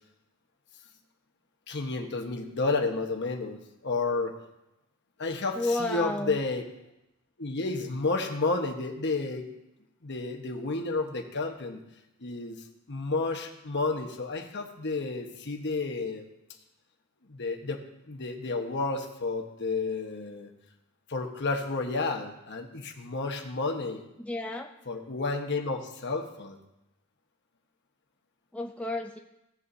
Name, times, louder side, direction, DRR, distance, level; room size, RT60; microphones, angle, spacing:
voice 1, 1.7-4.3 5.2-6.7 7.4-9.5 10.0-11.8 12.2-12.6 12.9-16.2 17.3-20.5 21.1-24.0 24.9-26.6, left 3 dB, 55° left, 3 dB, 1.2 m, -31 dB
voice 2, 5.6-6.4 24.2-24.7 28.5-29.2, left 2 dB, 5° left, 2 dB, 0.4 m, -31 dB
17.0 x 7.0 x 2.7 m, 0.89 s
head